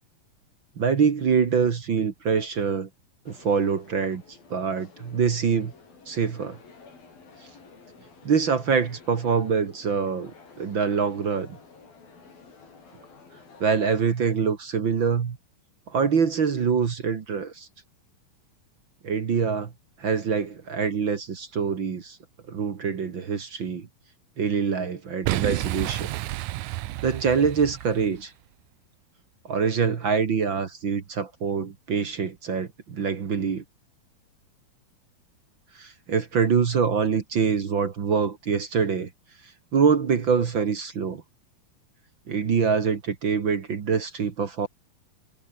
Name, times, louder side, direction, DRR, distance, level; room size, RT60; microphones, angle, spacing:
voice 1, 0.8-2.9 3.3-4.2 4.5-5.7 6.1-6.6 8.2-11.6 13.6-15.4 15.9-17.7 19.0-19.7 20.0-22.2 22.5-23.9 24.4-26.1 27.0-28.3 29.5-33.6 35.8-39.1 39.7-41.2 42.3-44.7, right 6 dB, 45° right, 1.8 m, -25 dB
sound 1, 3.3-14.0, left 4 dB, 80° left, 8.0 m, -51 dB
Boom, 25.2-28.2, right 17 dB, 80° right, 1.7 m, -30 dB
omnidirectional pair, 4.2 m